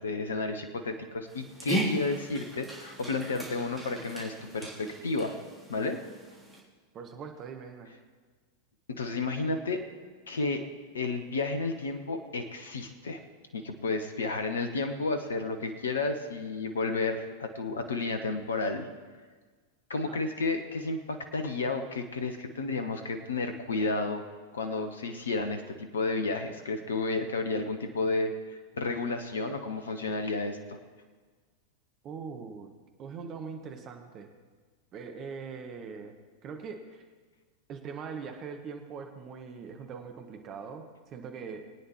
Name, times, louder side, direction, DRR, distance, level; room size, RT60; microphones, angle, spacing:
voice 1, 0.0-5.4 5.7-6.0 8.9-9.8 10.3-10.6 10.9-13.2 13.5-18.9 19.9-24.2 24.5-28.3 28.7-30.8, left 3 dB, 70° left, 7 dB, 1.0 m, -32 dB
Dog, 1.3-6.6, right 1 dB, 5° right, 3.2 m, -37 dB
voice 2, 6.9-7.9 20.0-20.2 32.0-32.7 33.0-34.3 34.9-36.1 36.4-37.0 37.7-41.6, right 5 dB, 30° right, 4 dB, 1.2 m, -41 dB
22.5 x 9.2 x 3.1 m, 1.4 s
figure-of-eight pair, 90°, 0 cm